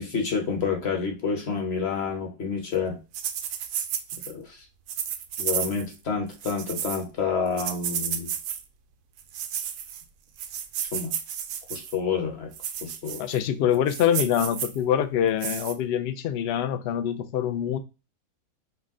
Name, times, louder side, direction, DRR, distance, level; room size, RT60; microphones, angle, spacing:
voice 1, 0.0-3.0 4.3-4.7 5.4-8.3 10.9-11.1 11.7-12.5 12.8-13.3, left 5 dB, 45° left, 1.1 m, -29 dB
sound 1, 3.1-4.3 4.9-5.9 6.3-7.0 7.6-8.6 9.2-10.0 10.4-12.0 12.5-13.4 13.7-14.8 15.4-15.7, right 9 dB, 70° right, 0.9 m, -32 dB
voice 2, 13.2-17.8, left 9 dB, 70° left, 0.5 m, -25 dB
5.6 x 2.2 x 3.6 m
omnidirectional pair, 1.6 m